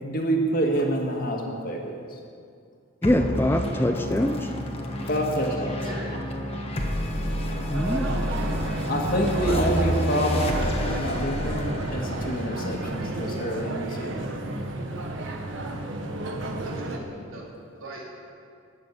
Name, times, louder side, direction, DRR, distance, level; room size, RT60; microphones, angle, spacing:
voice 1, 0.0-2.2 5.1-5.8 8.9-14.3, right 1 dB, 45° left, 0 dB, 2.0 m, -27 dB
sound 1, 3.0-13.8, equal, 30° left, 1.4 m, -30 dB
voice 2, 3.0-4.5 7.7-8.2, left 1 dB, 10° left, 6 dB, 0.6 m, -24 dB
voice 3, 5.3-6.2 16.6-17.4 17.7-18.0, right 1 dB, 90° right, -4 dB, 3.6 m, -40 dB
sound 2, 7.7-17.0, right 1 dB, 70° right, 1.4 m, -32 dB
15.0 x 6.8 x 9.9 m, 2.3 s
head